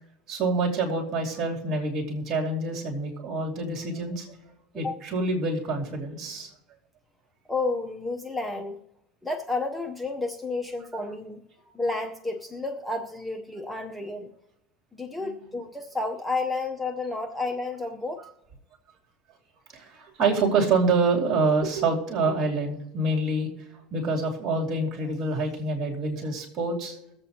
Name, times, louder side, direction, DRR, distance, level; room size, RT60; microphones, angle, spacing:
voice 1, 0.3-4.3 4.7-6.5 19.7-23.5 23.9-27.0, right 3 dB, 40° right, 0 dB, 3.0 m, -26 dB
voice 2, 7.5-8.8 9.2-11.4 11.7-14.3 14.9-18.2, left 3 dB, 5° left, 5 dB, 0.7 m, -31 dB
22.0 x 7.8 x 2.8 m, 0.92 s
supercardioid pair, 140°, 0 cm